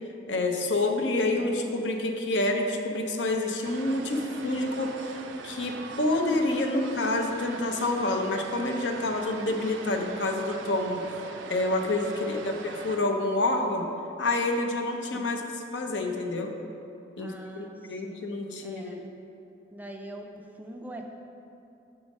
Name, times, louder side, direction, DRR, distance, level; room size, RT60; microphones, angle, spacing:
voice 1, 0.3-11.0 11.5-13.8 14.2-16.5 17.2-19.0, left 2 dB, 70° left, 4 dB, 0.6 m, -28 dB
sound 1, 3.6-13.0, right 4 dB, 80° right, 0.5 m, -42 dB
voice 2, 12.2-12.6 15.1-15.3 17.2-18.3 18.6-19.1 19.7-21.1, right 1 dB, 10° right, 2 dB, 0.3 m, -43 dB
6.3 x 4.7 x 5.2 m, 2.7 s
head